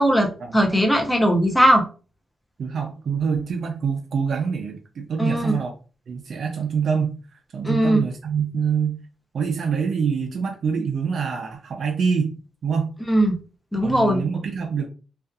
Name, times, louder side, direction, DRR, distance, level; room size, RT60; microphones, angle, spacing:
voice 1, 0.0-1.8 5.2-5.6 7.6-8.0 13.1-13.4 13.7-14.2, equal, 10° left, 2 dB, 0.6 m, -19 dB
voice 2, 2.6-5.7 6.1-7.2 7.5-9.0 9.3-12.3 12.6-12.9 13.8-14.9, right 6 dB, 65° right, 2 dB, 0.4 m, -25 dB
2.6 x 2.3 x 2.3 m, 0.36 s
cardioid pair, 110°, 0 cm